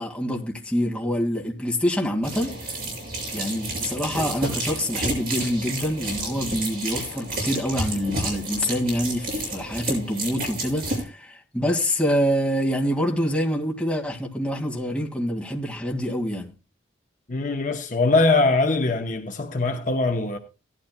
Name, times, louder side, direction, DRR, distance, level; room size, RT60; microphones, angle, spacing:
voice 1, 0.0-2.5 3.3-16.5, equal, 5° left, 2.0 m, -26 dB
sound 1, 2.2-11.0, right 2 dB, 50° right, 6.5 m, -30 dB
voice 2, 17.3-20.4, left 3 dB, 40° left, 0.8 m, -22 dB
17.5 x 12.0 x 2.2 m
head